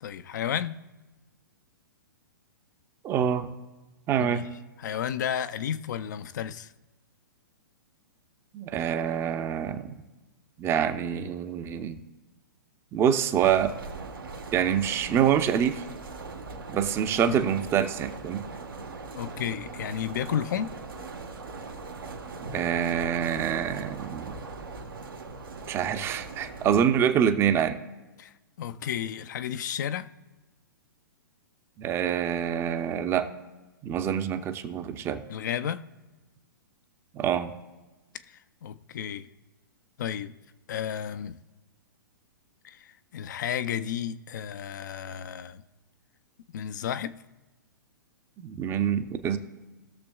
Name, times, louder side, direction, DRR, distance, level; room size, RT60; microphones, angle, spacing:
voice 1, 0.0-0.8 4.2-4.5 4.8-6.7 17.3-17.6 19.1-20.7 28.2-28.3 28.6-30.1 35.3-35.8 38.3-39.3 40.0-40.3 40.7-41.4 42.6-45.6 46.5-47.1, left 9 dB, 55° left, 0.5 m, -32 dB
voice 2, 3.0-3.5 4.1-4.4 8.5-10.0 10.6-12.0 12.9-13.7 14.5-15.8 16.7-18.5 22.3-24.4 25.7-27.8 31.8-33.3 33.8-35.2 37.1-37.5 48.4-49.4, right 8 dB, 20° right, 0.7 m, -26 dB
sound 1, 13.4-26.9, right 3 dB, 85° right, 1.4 m, -40 dB
19.5 x 6.8 x 2.4 m
figure-of-eight pair, 115°, 11 cm